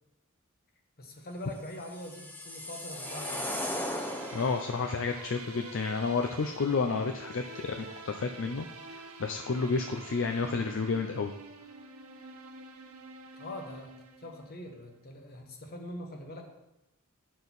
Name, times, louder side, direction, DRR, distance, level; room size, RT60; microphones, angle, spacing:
voice 1, 1.0-3.5 13.3-16.4, left 1 dB, 45° left, 3 dB, 1.3 m, -43 dB
sound 1, 1.6-4.8, left 1 dB, 10° left, 0.6 m, -37 dB
sound 2, 3.0-14.9, right 3 dB, 80° right, 0.9 m, -47 dB
voice 2, 4.3-8.7 9.2-11.3, left 4 dB, 60° left, 5 dB, 0.5 m, -30 dB
8.8 x 6.5 x 4.1 m, 0.93 s
head